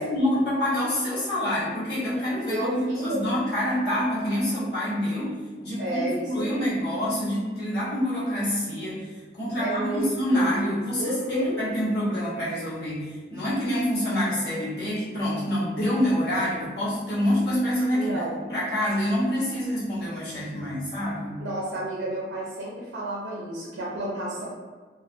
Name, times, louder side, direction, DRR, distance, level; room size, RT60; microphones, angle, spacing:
voice 1, 0.0-18.2 18.5-21.4, equal, 65° left, -10 dB, 1.1 m, -27 dB
voice 2, 2.5-3.2 5.8-6.6 9.6-10.5 11.0-11.7 17.9-18.4 21.4-24.4, right 1 dB, 90° right, -5 dB, 0.5 m, -31 dB
2.4 x 2.3 x 2.5 m, 1.5 s
head